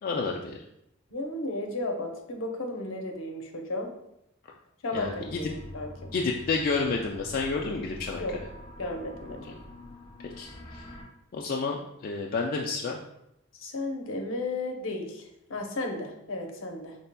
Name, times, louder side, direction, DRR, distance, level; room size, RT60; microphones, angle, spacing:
voice 1, 0.0-0.6 4.9-5.4 6.1-8.2 10.2-10.9 11.3-13.0, left 4 dB, 45° left, 0 dB, 0.3 m, -30 dB
voice 2, 1.1-3.9 4.8-6.1 8.2-8.4 8.8-9.5 13.5-17.0, left 2 dB, 70° left, 2 dB, 0.7 m, -34 dB
sound 1, 4.9-11.0, left 1 dB, 25° left, 0.8 m, -45 dB
5.4 x 3.3 x 2.2 m, 0.81 s
head